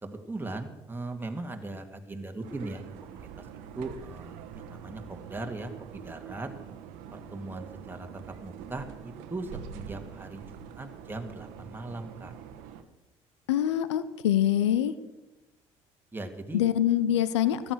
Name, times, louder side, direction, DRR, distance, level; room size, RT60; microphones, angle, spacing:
voice 1, 0.0-3.4 3.8-6.5 7.1-8.1 8.4-12.3 16.1-16.6, right 2 dB, 15° right, 4 dB, 2.2 m, -39 dB
sound 1, 2.4-12.8, right 8 dB, 75° right, 1.1 m, -45 dB
voice 2, 13.5-14.9 16.5-17.7, left 11 dB, 85° left, 14 dB, 0.7 m, -25 dB
14.0 x 11.5 x 6.5 m, 1.0 s
hypercardioid pair, 60°, 14 cm